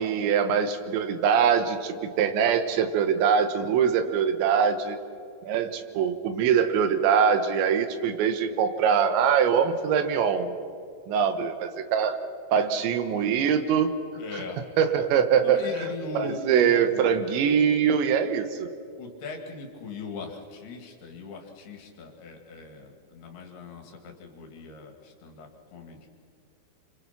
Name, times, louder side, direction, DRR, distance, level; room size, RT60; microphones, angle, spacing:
voice 1, 0.0-5.0 5.4-10.5 11.1-12.2 12.5-14.0 14.3-14.4 14.8-15.9 16.1-18.7, right 7 dB, 80° right, 8 dB, 3.5 m, -23 dB
voice 2, 14.2-14.7 14.9-15.0 15.4-17.3 19.0-26.1, left 4 dB, 65° left, 2 dB, 4.1 m, -40 dB
26.5 x 25.5 x 5.9 m, 2.4 s
omnidirectional pair, 5.1 m